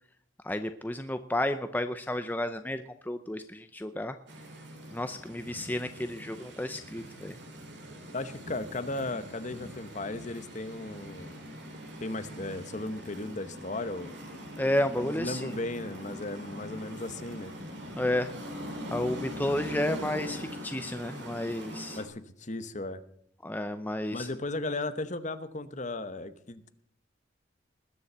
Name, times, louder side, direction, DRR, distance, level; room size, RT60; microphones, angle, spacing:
voice 1, 0.4-4.2 4.9-7.4 14.6-15.5 18.0-18.3 18.9-22.0 23.4-24.3, left 1 dB, 10° left, 9 dB, 0.6 m, -32 dB
sound 1, 4.3-22.0, equal, 60° right, 2.9 m, -42 dB
voice 2, 8.1-11.5 12.0-14.2 15.0-17.5 22.0-23.0 24.1-26.7, left 2 dB, 40° left, 12 dB, 1.0 m, -36 dB
20.0 x 7.1 x 7.9 m, 0.67 s
head